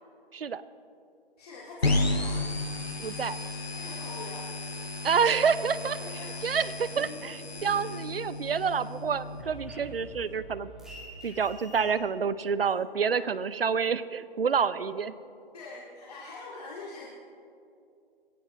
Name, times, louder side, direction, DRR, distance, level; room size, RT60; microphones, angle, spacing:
voice 1, 1.4-2.4 3.7-4.5 6.0-6.4 13.1-13.2 15.5-17.1, left 3 dB, 40° left, -4 dB, 2.2 m, -43 dB
sound 1, 1.8-9.4, left 2 dB, 80° left, 2.1 m, -33 dB
voice 2, 3.0-3.4 5.0-6.0 6.4-10.7 11.2-15.1, right 6 dB, 70° right, 15 dB, 0.8 m, -28 dB
sound 2, 6.9-8.2 8.6-11.9, equal, ahead, 2.0 m, -46 dB
21.5 x 17.5 x 3.1 m, 2.6 s
figure-of-eight pair, 145°, 30 cm